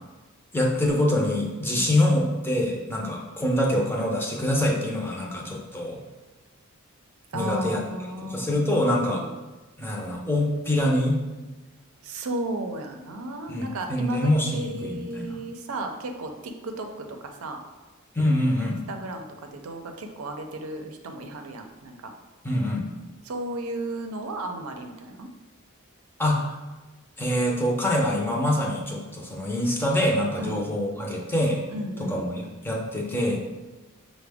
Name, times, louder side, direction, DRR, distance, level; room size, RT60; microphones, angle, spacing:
voice 1, 0.5-6.0 7.3-7.8 8.2-9.2 9.8-11.2 13.5-15.4 18.2-18.8 22.4-22.9 26.2-26.5 27.2-31.6 32.0-33.4, left 1 dB, 10° left, -1 dB, 0.5 m, -25 dB
voice 2, 7.3-8.7 9.0-9.3 12.0-17.6 18.9-22.1 23.2-25.3 30.4-30.8 31.7-32.2, right 1 dB, 90° right, 4 dB, 0.5 m, -34 dB
5.8 x 2.1 x 3.4 m, 1.2 s
head